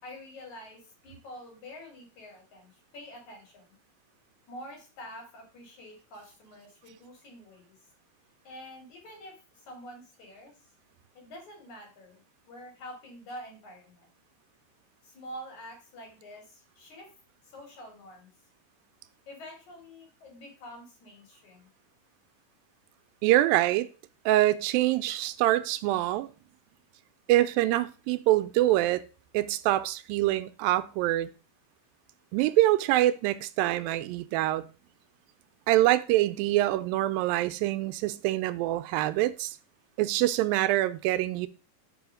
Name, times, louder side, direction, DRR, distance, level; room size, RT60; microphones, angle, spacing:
voice 1, 0.0-3.6 4.5-7.8 8.4-10.5 11.1-12.2 12.5-14.1 15.0-17.1 17.4-18.3 19.3-21.7, equal, 55° left, 4.1 m, -47 dB
voice 2, 23.2-23.9 24.3-26.3 27.3-29.0 29.3-31.3 32.3-34.6 35.7-39.6 40.0-41.5, right 15 dB, 85° right, 2.4 m, -25 dB
5.4 x 5.4 x 6.3 m
omnidirectional pair, 4.0 m